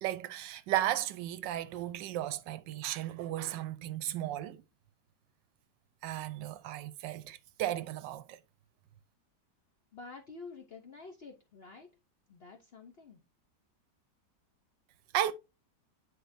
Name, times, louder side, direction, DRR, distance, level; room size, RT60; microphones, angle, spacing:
voice 1, 0.0-4.6 6.0-8.4 15.1-15.3, right 12 dB, 85° right, 1.3 m, -35 dB
voice 2, 9.9-12.0 12.3-13.2, left 4 dB, 60° left, 0.6 m, -49 dB
9.3 x 4.2 x 2.5 m
omnidirectional pair, 1.9 m